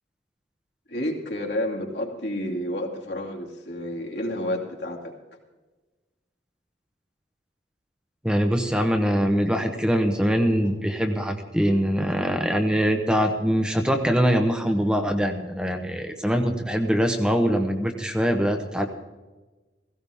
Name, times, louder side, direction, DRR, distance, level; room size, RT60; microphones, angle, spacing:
voice 1, 0.9-5.1 10.6-10.7, left 1 dB, 70° left, -1 dB, 2.5 m, -30 dB
voice 2, 8.2-18.9, equal, 5° right, 4 dB, 0.9 m, -23 dB
16.5 x 16.0 x 3.5 m, 1.2 s
head